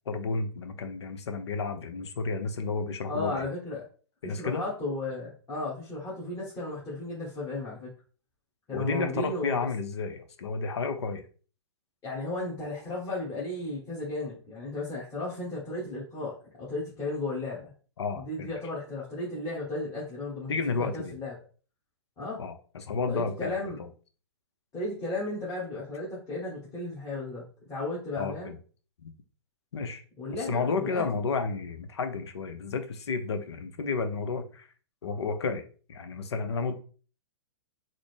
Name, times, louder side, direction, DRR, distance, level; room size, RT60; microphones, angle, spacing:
voice 1, 0.1-3.4 4.2-4.6 8.7-11.2 18.0-18.5 20.5-21.1 22.4-23.5 23.8-23.9 28.2-28.6 29.0-29.1 29.7-30.0 30.3-34.7 35.0-35.6 35.9-36.8, left 4 dB, 70° left, 8 dB, 0.6 m, -31 dB
voice 2, 3.1-3.8 4.2-7.9 8.7-9.6 12.0-17.7 18.1-21.3 22.2-22.4 23.1-23.8 24.7-27.4 27.7-28.5 30.2-31.0, left 2 dB, 25° left, -7 dB, 1.1 m, -34 dB
3.9 x 2.0 x 3.2 m, 0.39 s
figure-of-eight pair, 115°, 15 cm